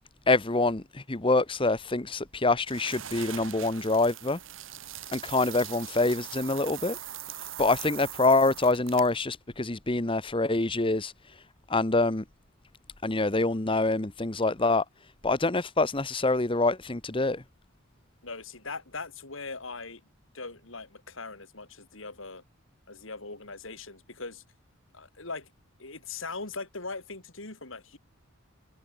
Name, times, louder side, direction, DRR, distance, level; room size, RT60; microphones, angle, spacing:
voice 1, 0.3-4.4 5.1-7.0 7.6-11.1 11.7-12.2 13.0-14.8 15.2-17.4, left 2 dB, 25° left, 1.2 m, -25 dB
sound 1, 2.7-9.2, right 10 dB, 65° right, 2.1 m, -41 dB
voice 2, 18.2-20.0 20.3-22.4 22.9-24.4 24.9-25.5 25.8-28.0, left 3 dB, 65° left, 3.7 m, -40 dB
head